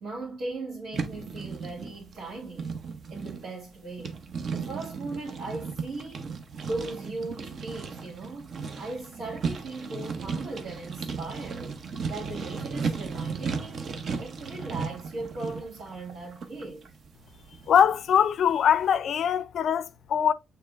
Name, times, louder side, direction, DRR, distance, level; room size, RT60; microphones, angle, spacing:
voice 1, 0.0-2.8 3.1-4.2 4.5-6.3 6.6-8.5 8.8-11.8 12.1-13.9 14.2-16.9, right 2 dB, 85° right, 1.9 m, -38 dB
sound 1, 0.9-18.6, right 5 dB, 55° right, 0.7 m, -36 dB
voice 2, 17.7-20.3, left 8 dB, 65° left, 0.4 m, -22 dB
6.7 x 3.3 x 2.4 m
cardioid pair, 90°, 0 cm